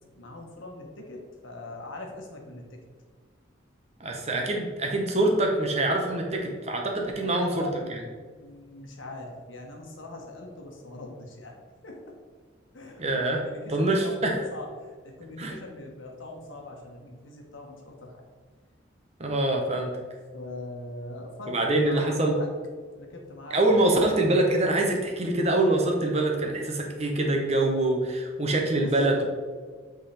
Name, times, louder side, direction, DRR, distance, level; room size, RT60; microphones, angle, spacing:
voice 1, 0.2-2.8 7.1-8.0 8.4-11.5 11.8-12.2 12.7-13.0 13.3-18.2 20.3-22.5 23.0-24.0 28.7-29.2, left 2 dB, 80° left, 1 dB, 1.2 m, -41 dB
voice 2, 4.0-7.7 13.0-13.4 13.7-14.4 15.4-15.5 19.2-19.9 21.5-22.4 23.5-29.2, right 2 dB, 30° right, 1 dB, 0.9 m, -24 dB
8.3 x 3.8 x 3.4 m, 1.5 s
head